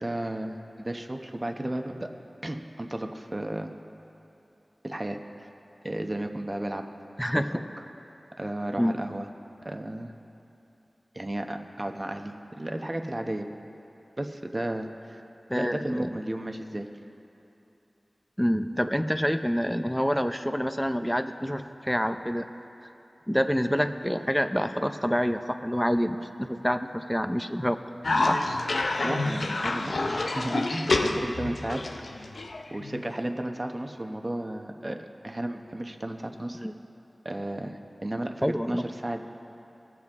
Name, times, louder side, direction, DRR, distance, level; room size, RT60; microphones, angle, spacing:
voice 1, 0.0-2.1 2.4-3.7 4.8-5.5 5.8-6.9 7.3-7.4 8.4-9.3 9.6-10.1 11.1-13.5 14.2-15.2 15.6-16.9 29.0-31.8 32.2-32.3 32.7-36.6 37.2-39.2, right 1 dB, 30° right, 5 dB, 0.9 m, -33 dB
voice 2, 7.2-7.6 8.8-9.0 15.5-16.1 18.4-22.5 23.3-27.8 28.3-28.4 36.5-36.7 38.4-38.8, equal, 5° left, 8 dB, 0.6 m, -27 dB
Cough, 28.0-33.1, left 2 dB, 80° left, 0.6 m, -28 dB
21.0 x 7.6 x 3.6 m, 2.9 s
wide cardioid pair, 50°, 0 cm